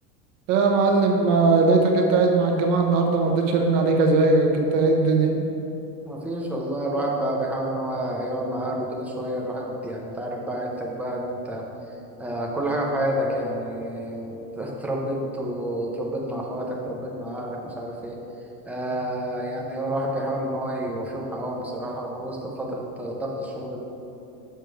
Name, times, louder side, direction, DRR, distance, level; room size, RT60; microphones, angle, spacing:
voice 1, 0.5-5.3, right 3 dB, 40° right, 2 dB, 1.1 m, -19 dB
voice 2, 6.1-11.6 12.2-18.2 18.7-23.8, right 1 dB, 5° right, -2 dB, 0.5 m, -29 dB
7.0 x 6.2 x 4.6 m, 3.0 s
supercardioid pair, 150°, 48 cm